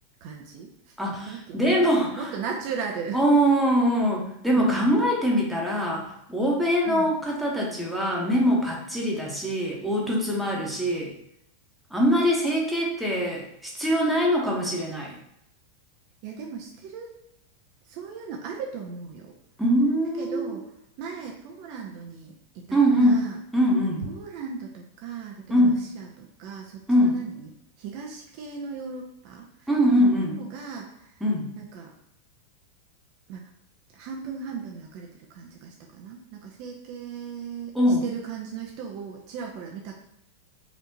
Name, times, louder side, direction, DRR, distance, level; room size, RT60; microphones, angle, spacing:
voice 1, 0.2-1.8 2.2-3.2 4.6-5.0 6.8-7.2 16.2-17.1 17.8-19.3 20.2-20.6 21.0-23.4 24.0-27.5 27.8-29.7 30.0-31.2 31.6-31.9 33.3-33.5 33.9-37.7 38.0-40.0, right 6 dB, 45° right, 0 dB, 0.5 m, -37 dB
voice 2, 1.0-2.2 3.1-11.1 11.9-15.1 19.6-20.6 22.7-23.2 23.5-24.0 25.5-25.8 26.9-27.2 29.7-30.3 31.2-31.5 37.7-38.0, equal, ahead, -3 dB, 1.0 m, -23 dB
4.2 x 2.7 x 2.8 m, 0.76 s
figure-of-eight pair, 90°, 0 cm